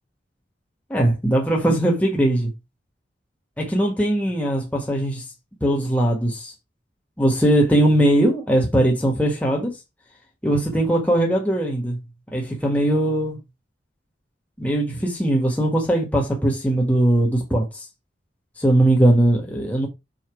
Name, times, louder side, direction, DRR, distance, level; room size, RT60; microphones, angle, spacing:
voice 1, 0.9-2.5 3.6-5.2 5.6-6.5 7.2-9.8 10.4-12.0 12.3-13.4 14.6-17.7 18.6-19.9, right 1 dB, 10° left, 1.6 m, -20 dB
5.9 x 4.3 x 4.5 m
head